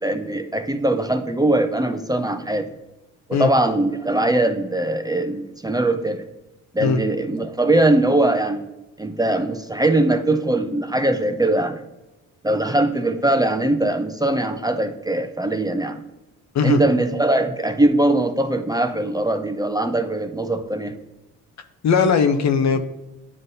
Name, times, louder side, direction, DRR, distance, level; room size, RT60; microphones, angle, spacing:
voice 1, 0.0-2.7 3.3-6.2 6.7-8.6 9.0-11.8 12.4-16.0 16.6-21.0, right 1 dB, 10° right, 7 dB, 0.6 m, -21 dB
voice 2, 21.8-22.8, left 5 dB, 55° left, 8 dB, 0.8 m, -18 dB
9.6 x 3.7 x 2.7 m, 1.0 s
supercardioid pair, 55°, 33 cm